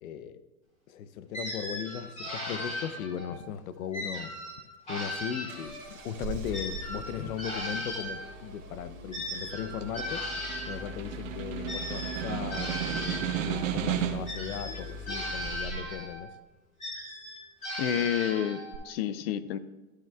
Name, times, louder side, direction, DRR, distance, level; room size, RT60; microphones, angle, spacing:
voice 1, 0.0-0.4 0.9-4.3 4.9-10.3 10.7-16.3, left 9 dB, 80° left, 13 dB, 0.8 m, -37 dB
sound 1, 1.3-3.4 3.9-6.0 6.5-10.9 11.7-13.6 14.3-16.2 16.8-18.8, equal, 15° left, 3.0 m, -37 dB
Engine starting, 5.5-16.1 18.7-18.8, equal, 25° right, 2.7 m, -42 dB
Snare drum, 9.5-14.4, right 10 dB, 65° right, 1.2 m, -34 dB
voice 2, 17.8-19.6, left 10 dB, 45° left, 14 dB, 0.5 m, -30 dB
13.5 x 9.3 x 2.3 m, 1.2 s
supercardioid pair, 160°, 42 cm